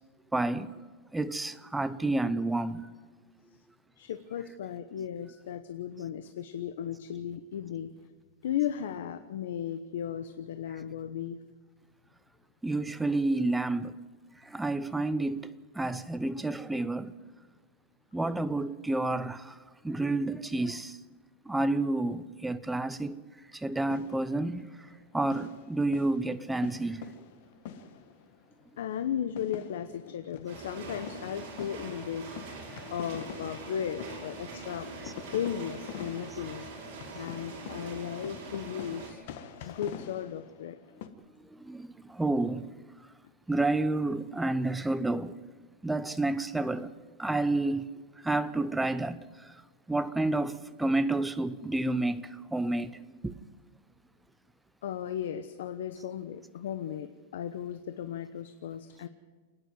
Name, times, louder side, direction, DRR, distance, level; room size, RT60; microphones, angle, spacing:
voice 1, 0.3-0.8 1.1-2.9 12.6-13.9 14.4-17.1 18.1-21.0 21.5-23.2 23.5-24.9 25.1-27.1 32.7-32.8 35.0-35.1 41.4-42.8 43.5-45.4 45.8-47.9 48.2-49.6 49.9-53.4, right 2 dB, 5° right, 0.5 m, -30 dB
voice 2, 4.0-7.9 8.4-11.4 28.8-32.3 32.6-34.9 35.3-36.7 37.2-39.2 39.6-40.8 54.8-59.1, left 9 dB, 75° left, 0.9 m, -36 dB
sound 1, 23.9-25.0 25.3-28.4 28.8-28.9 29.3-41.1, left 8 dB, 50° left, 1.4 m, -46 dB
sound 2, 30.5-39.1, right 3 dB, 40° right, 5.8 m, -43 dB
28.0 x 10.0 x 9.3 m
supercardioid pair, 175°, 0 cm